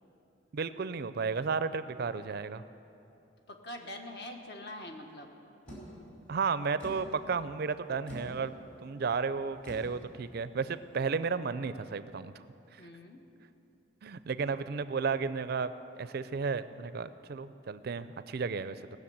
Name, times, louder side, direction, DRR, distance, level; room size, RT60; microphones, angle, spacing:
voice 1, 0.5-2.6 6.3-8.5 8.8-12.3 14.0-15.7 16.0-18.8, right 5 dB, 55° right, 13 dB, 0.4 m, -33 dB
voice 2, 3.5-5.3 12.8-13.2, left 1 dB, 60° left, 3 dB, 1.4 m, -44 dB
sound 1, 5.7-11.3, equal, 40° left, 4.3 m, -49 dB
18.5 x 6.6 x 8.6 m, 2.8 s
head